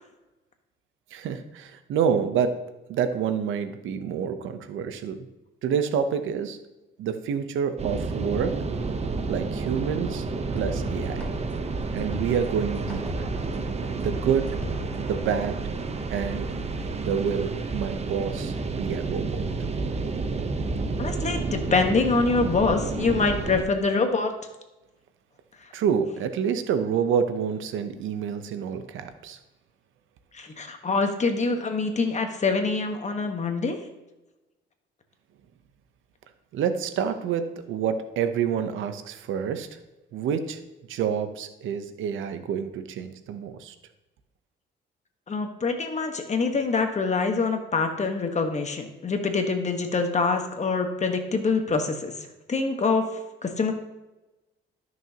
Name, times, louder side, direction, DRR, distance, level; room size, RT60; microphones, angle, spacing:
voice 1, 1.1-5.3 5.6-6.6 7.0-8.6 9.3-10.2 10.5-11.2 11.9-13.0 14.0-14.6 15.0-15.6 16.1-16.6 17.0-19.5 25.7-29.4 36.5-39.8 40.1-40.6 40.9-43.7, right 7 dB, 80° right, 9 dB, 0.8 m, -28 dB
sound 1, 7.8-23.6, right 3 dB, 35° right, 0.9 m, -30 dB
sound 2, 10.6-15.5, equal, 5° left, 2.1 m, -38 dB
voice 2, 21.0-24.3 30.3-33.8 45.3-52.1 52.5-53.0 53.4-53.7, left 4 dB, 35° left, 5 dB, 1.3 m, -25 dB
13.0 x 6.2 x 2.9 m, 1.0 s
cardioid pair, 90°, 20 cm